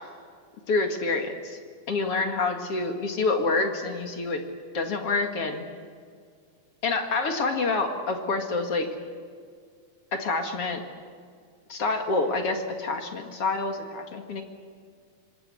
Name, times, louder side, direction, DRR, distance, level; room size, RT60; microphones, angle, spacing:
voice 1, 0.7-1.6 1.9-4.4 4.7-5.6 6.8-8.9 10.1-10.8 11.7-14.4, left 3 dB, 45° left, 5 dB, 2.6 m, -27 dB
26.5 x 21.0 x 9.9 m, 2.1 s
omnidirectional pair, 4.1 m